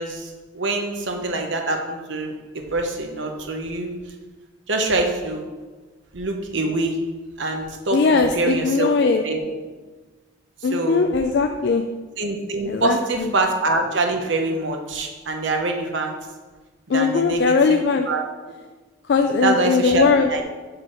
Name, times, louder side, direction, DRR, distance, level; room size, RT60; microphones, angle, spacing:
voice 1, 0.0-3.9 4.7-5.5 6.1-7.0 7.4-8.9 9.2-9.5 10.6-11.1 12.2-16.1 16.9-18.2 19.4-20.4, right 2 dB, 75° right, 3 dB, 0.9 m, -25 dB
voice 2, 7.9-9.2 10.6-11.8 12.7-13.3 16.9-18.1 19.1-20.3, left 4 dB, 60° left, 5 dB, 0.3 m, -19 dB
5.9 x 4.8 x 4.9 m, 1.3 s
head